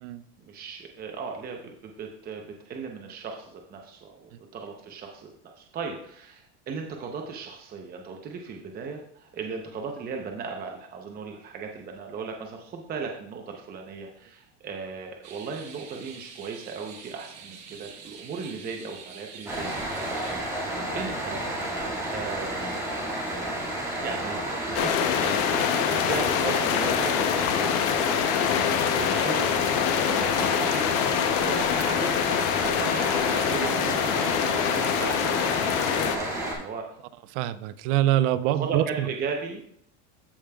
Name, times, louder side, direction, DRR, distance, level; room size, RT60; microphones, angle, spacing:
voice 1, 0.4-20.0 20.9-21.5 22.1-22.8 24.0-24.4 24.7-35.5 35.9-37.0 38.5-39.6, right 5 dB, 25° right, 2 dB, 0.7 m, -37 dB
sound 1, 15.2-20.4, right 6 dB, 45° right, 1.2 m, -46 dB
sound 2, 19.5-36.5, right 1 dB, 10° right, 1.9 m, -31 dB
sound 3, 24.7-36.2, left 10 dB, 70° left, 0.8 m, -25 dB
voice 2, 37.3-39.1, right 13 dB, 70° right, 15 dB, 0.5 m, -25 dB
14.5 x 5.1 x 2.3 m, 0.68 s
cardioid pair, 150°, 37 cm